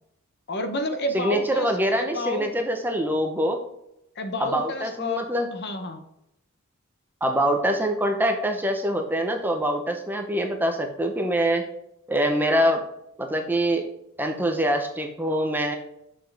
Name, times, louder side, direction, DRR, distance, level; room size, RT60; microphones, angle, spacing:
voice 1, 0.5-1.7 2.0-2.5 4.2-5.2 5.5-6.0, left 2 dB, 50° left, 7 dB, 0.9 m, -30 dB
voice 2, 1.1-3.6 4.4-5.5 7.2-11.6 12.1-12.8 13.2-13.8 14.2-15.8, equal, 10° right, 4 dB, 0.7 m, -24 dB
6.7 x 5.7 x 3.4 m, 0.81 s
head